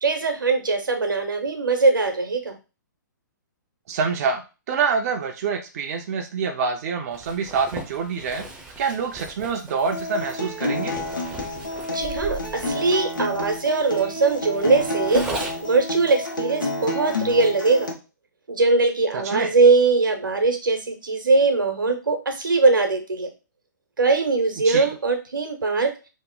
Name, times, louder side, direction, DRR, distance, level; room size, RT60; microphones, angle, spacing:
voice 1, 0.0-2.5 11.9-17.9 18.5-23.3 24.0-26.0, right 3 dB, 90° right, 5 dB, 0.9 m, -21 dB
voice 2, 3.9-4.4 4.7-8.5 8.8-11.0 19.1-19.5 24.6-24.9, right 5 dB, 50° right, 3 dB, 0.5 m, -26 dB
Zipper (clothing), 7.1-15.8, right 2 dB, 5° right, 0.6 m, -37 dB
Acoustic guitar, 9.9-17.9, left 1 dB, 85° left, 0.8 m, -29 dB
2.9 x 2.1 x 3.7 m, 0.30 s
hypercardioid pair, 135°, 11 cm